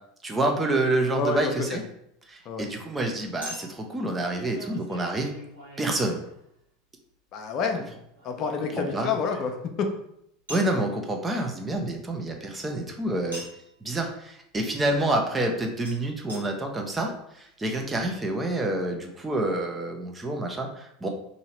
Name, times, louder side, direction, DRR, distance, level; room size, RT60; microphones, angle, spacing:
voice 1, 0.2-1.8 2.3-5.3 5.8-6.2 8.6-9.2 10.5-13.4 13.8-21.1, right 1 dB, 15° right, 2 dB, 0.7 m, -28 dB
voice 2, 1.1-1.5 2.5-2.6 7.3-7.8 8.2-9.9, left 5 dB, 45° left, 4 dB, 0.6 m, -28 dB
Chink clink, 3.4-6.6 8.2-9.8 10.5-10.8 13.3-13.7 15.9-16.0 16.3-16.4 17.1-17.2 17.3-17.4, equal, 85° right, 1.2 m, -43 dB
2.8 x 2.8 x 4.3 m, 0.76 s
figure-of-eight pair, 75°, 0 cm